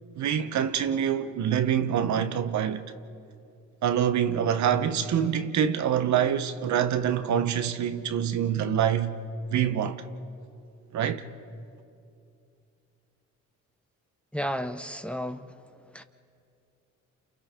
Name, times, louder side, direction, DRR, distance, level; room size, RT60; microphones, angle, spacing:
voice 1, 0.2-2.9 3.8-9.1 9.5-10.0 10.9-11.2, right 9 dB, 70° right, 1.0 m, -25 dB
voice 2, 14.3-15.5 15.9-16.0, equal, 5° left, 0.8 m, -32 dB
29.5 x 28.0 x 3.7 m
cardioid pair, 90°, 30 cm